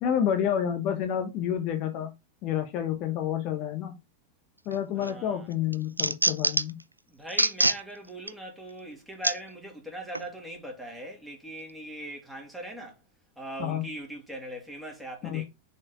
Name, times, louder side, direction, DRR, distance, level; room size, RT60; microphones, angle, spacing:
voice 1, 0.0-2.1 2.4-3.9 4.7-6.7 13.6-13.8 15.2-15.4, left 9 dB, 40° left, 0.9 m, -29 dB
sound 1, 4.7-5.1 5.5-6.8 7.3-7.8 8.3-8.4 9.2-9.4 10.1-10.3, right 2 dB, 85° right, 0.3 m, -25 dB
voice 2, 4.9-5.5 7.1-13.0 13.4-15.5, right 1 dB, ahead, 2.6 m, -40 dB
6.1 x 4.5 x 3.8 m
figure-of-eight pair, 90°, 0 cm